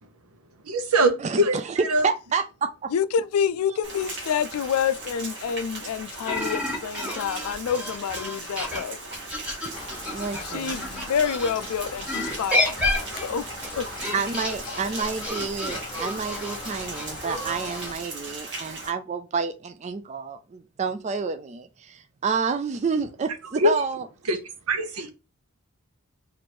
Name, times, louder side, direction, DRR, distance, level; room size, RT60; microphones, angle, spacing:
voice 1, 0.6-2.1 23.5-23.7 24.3-24.4 24.7-25.1, right 1 dB, 80° right, 0.8 m, -23 dB
voice 2, 2.0-2.7 10.1-10.8 14.1-24.0, right 5 dB, 30° right, 0.3 m, -29 dB
voice 3, 2.9-9.0 10.4-13.5 13.8-13.9 14.1-14.2, left 7 dB, 80° left, 0.3 m, -28 dB
Rain, 3.8-18.9, right 2 dB, 50° right, 1.0 m, -39 dB
sound 1, 6.3-11.5 12.1-17.9, left 2 dB, 5° right, 1.1 m, -30 dB
Rain 2, 9.7-17.9, left 2 dB, 20° left, 0.9 m, -40 dB
3.1 x 2.6 x 4.3 m
head